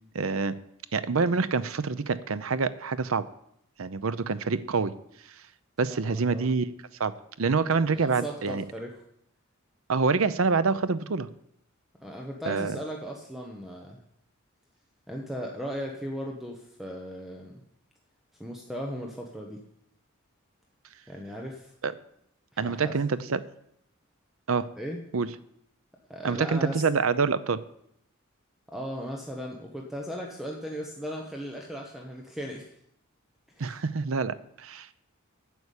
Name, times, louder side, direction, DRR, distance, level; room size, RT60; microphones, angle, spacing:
voice 1, 0.1-0.5 0.9-3.3 3.8-4.9 5.8-6.7 7.0-8.6 9.9-11.3 12.4-12.8 21.8-21.9 22.6-23.4 24.5-24.7 25.1-25.3 26.2-27.6 33.6-34.9, right 4 dB, 70° right, 14 dB, 0.6 m, -26 dB
voice 2, 5.9-6.5 7.5-7.6 7.9-9.0 12.0-14.0 15.1-17.5 18.4-19.6 21.1-21.7 22.6-23.0 24.8-25.0 26.1-26.9 28.7-32.7 33.5-33.8, equal, ahead, 0 dB, 1.0 m, -37 dB
9.3 x 7.1 x 8.3 m, 0.75 s
head